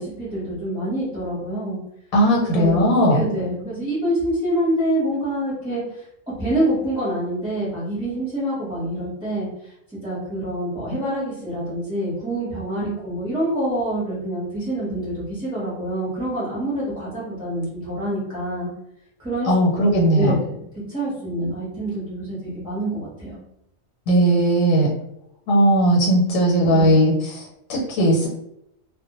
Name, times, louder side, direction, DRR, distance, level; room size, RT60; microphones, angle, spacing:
voice 1, 0.0-1.8 2.5-2.8 3.1-5.8 6.4-9.5 10.0-18.7 19.2-20.6 20.9-23.4 26.7-26.9, right 1 dB, 5° right, -10 dB, 0.6 m, -26 dB
voice 2, 2.1-3.2 12.8-12.9 19.4-20.3 24.1-24.9 25.5-27.4 27.7-28.3, right 1 dB, 90° left, -3 dB, 1.1 m, -17 dB
2.1 x 2.1 x 2.9 m, 0.78 s
omnidirectional pair, 1.4 m